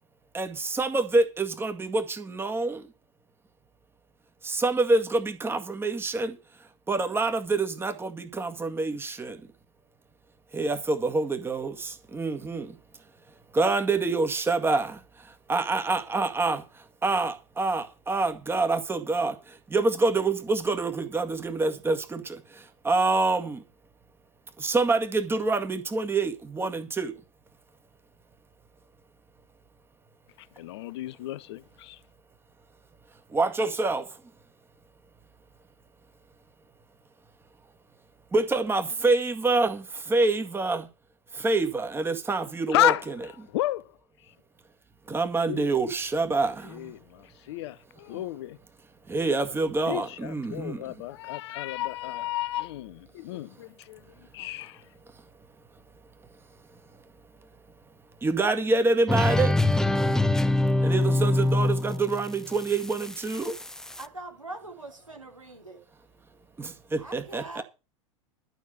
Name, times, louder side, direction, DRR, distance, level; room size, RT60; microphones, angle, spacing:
voice 1, 0.3-2.8 4.4-6.4 6.9-9.4 10.5-12.8 13.5-15.0 15.5-16.6 17.0-19.4 19.7-22.4 22.8-23.6 24.6-27.1 33.3-34.1 38.3-40.9 41.3-43.1 45.1-46.9 48.1-48.2 49.1-50.8 58.2-59.5 60.8-63.5 66.6-67.6, right 3 dB, 15° right, 2.0 m, -26 dB
voice 2, 30.6-32.0 42.7-43.0 43.5-43.8 45.5-45.6 46.7-48.6 49.9-54.0 54.3-54.8, left 16 dB, 55° left, 0.7 m, -31 dB
sound 1, 59.1-64.0, left 2 dB, 5° left, 0.6 m, -25 dB
voice 3, 64.0-65.8 67.0-67.6, right 2 dB, 90° right, 3.2 m, -42 dB
12.5 x 6.2 x 7.9 m
figure-of-eight pair, 85°, 16 cm